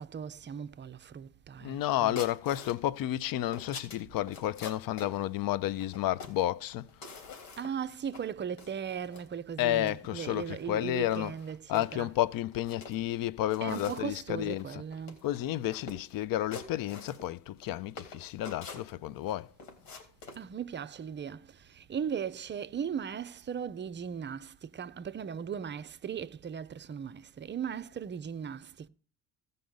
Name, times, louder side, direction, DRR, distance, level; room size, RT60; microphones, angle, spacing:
voice 1, 0.0-2.2 7.6-12.1 13.6-15.2 20.4-28.9, right 7 dB, 25° right, 0.6 m, -38 dB
voice 2, 1.6-6.9 9.6-11.3 11.7-14.8 15.2-19.5, left 13 dB, 45° left, 0.7 m, -31 dB
sound 1, 2.2-2.8 3.2-5.1 5.8-6.5 6.9-7.8 8.1-8.2 8.6-9.3 9.8-9.9 10.3-10.6 11.1-11.9 12.5-13.1 13.5-14.1 14.5-14.6 14.9-15.4 15.7-16.2 16.5-17.7 18.0-19.3 19.6-20.4, left 4 dB, 75° left, 3.3 m, -46 dB
16.5 x 5.4 x 3.8 m
hypercardioid pair, 65°, 49 cm